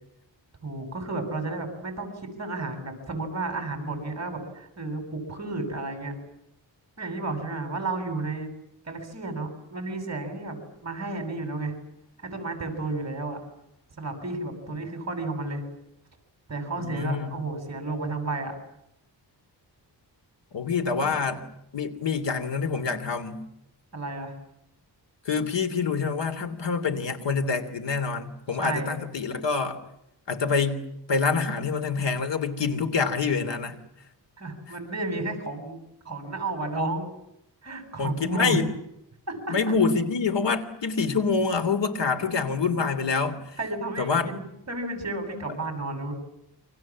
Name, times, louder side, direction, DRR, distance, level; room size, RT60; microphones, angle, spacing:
voice 1, 0.6-6.1 7.0-8.5 8.8-10.6 10.8-11.7 12.2-13.4 14.0-15.6 16.5-18.5 20.9-21.2 23.9-24.4 28.6-29.0 34.4-37.1 37.6-38.6 39.3-39.8 43.6-46.1, right 2 dB, 40° right, 7.9 m, -32 dB
voice 2, 16.8-17.3 20.5-21.4 21.7-23.4 25.2-29.8 30.3-33.8 38.0-38.7 39.5-43.6 44.0-44.3, left 5 dB, 85° left, 3.2 m, -26 dB
29.0 x 25.5 x 7.5 m
wide cardioid pair, 135°, 42 cm